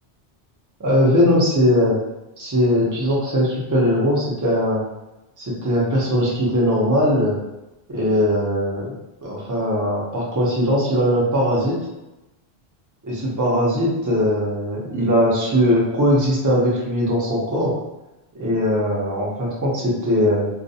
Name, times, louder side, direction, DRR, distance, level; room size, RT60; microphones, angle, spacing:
voice 1, 0.8-2.0 2.4-4.8 5.4-7.4 7.9-8.9 9.2-11.7 13.0-17.7 18.3-20.5, equal, 20° right, -4 dB, 0.6 m, -20 dB
2.5 x 2.1 x 2.7 m, 0.96 s
omnidirectional pair, 1.1 m